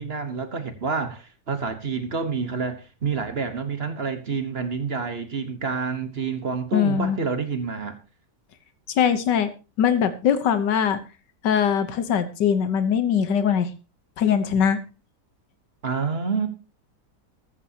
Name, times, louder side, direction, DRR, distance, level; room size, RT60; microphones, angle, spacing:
voice 1, 0.0-7.9 15.8-16.5, right 5 dB, 40° right, 1.4 m, -28 dB
voice 2, 6.7-7.2 9.0-9.5 9.8-11.0 11.4-13.7 14.2-14.8, left 8 dB, 90° left, 1.7 m, -21 dB
14.0 x 13.5 x 2.9 m
omnidirectional pair, 1.8 m